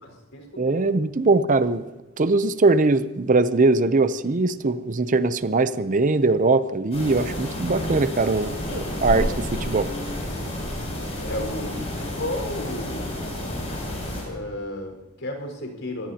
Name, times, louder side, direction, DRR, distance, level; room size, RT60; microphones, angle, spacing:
voice 1, 0.0-0.9 8.7-9.3 11.1-13.2 14.2-16.1, left 1 dB, 65° left, 2 dB, 4.8 m, -33 dB
voice 2, 0.6-1.8 2.2-9.3 9.7-9.9, right 3 dB, 40° right, 12 dB, 0.6 m, -21 dB
sound 1, 6.9-14.2, left 1 dB, 30° left, 7.4 m, -30 dB
25.0 x 17.5 x 2.9 m, 1.1 s
head